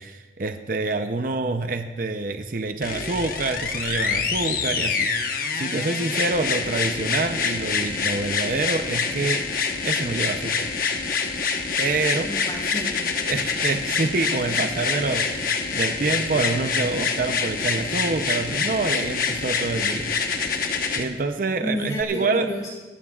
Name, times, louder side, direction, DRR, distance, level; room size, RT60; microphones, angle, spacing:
voice 1, 0.0-9.4 9.8-10.7 11.8-12.3 13.3-20.6 20.9-22.5, right 3 dB, 50° right, 7 dB, 0.6 m, -27 dB
sound 1, 2.8-21.0 22.0-22.1, left 5 dB, 50° left, 1.1 m, -26 dB
voice 2, 12.2-13.0 21.6-22.7, equal, 20° left, -2 dB, 6.0 m, -31 dB
26.5 x 14.5 x 2.4 m, 1.2 s
head